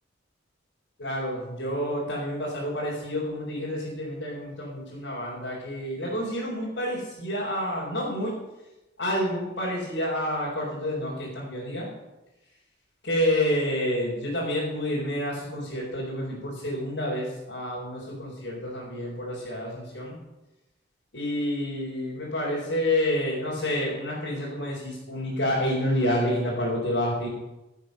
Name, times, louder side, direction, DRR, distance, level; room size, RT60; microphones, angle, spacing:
voice 1, 1.0-8.4 9.0-11.9 13.0-20.2 21.1-27.3, left 1 dB, 75° left, -7 dB, 4.3 m, -29 dB
15.5 x 8.2 x 6.6 m, 1.0 s
head